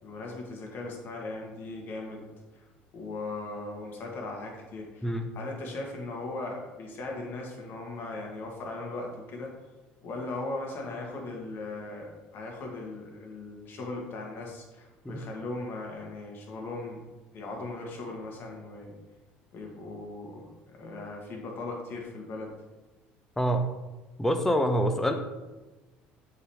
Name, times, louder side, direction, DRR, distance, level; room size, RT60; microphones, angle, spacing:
voice 1, 0.0-2.2 2.5-2.6 2.9-9.5 10.0-17.0 17.3-18.9 19.5-22.5, left 2 dB, 55° left, 0 dB, 1.6 m, -38 dB
voice 2, 24.2-25.1, equal, 10° left, 6 dB, 0.7 m, -25 dB
8.2 x 4.0 x 3.0 m, 1.1 s
supercardioid pair, 95°, 4 cm